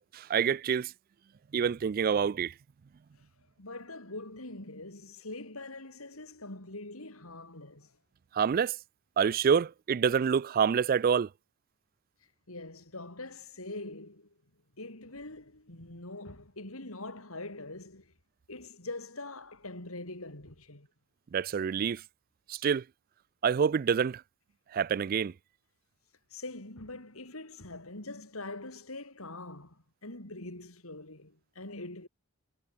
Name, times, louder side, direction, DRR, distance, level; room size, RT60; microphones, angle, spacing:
voice 1, 0.1-0.9 1.5-2.5 8.3-8.8 9.2-11.3 21.3-22.0 22.5-22.8 23.4-24.2 24.7-25.3, right 7 dB, 45° right, 0.3 m, -27 dB
voice 2, 3.6-7.9 12.5-14.3 14.8-18.1 18.5-20.9 26.3-32.1, left 2 dB, 80° left, 5.2 m, -43 dB
head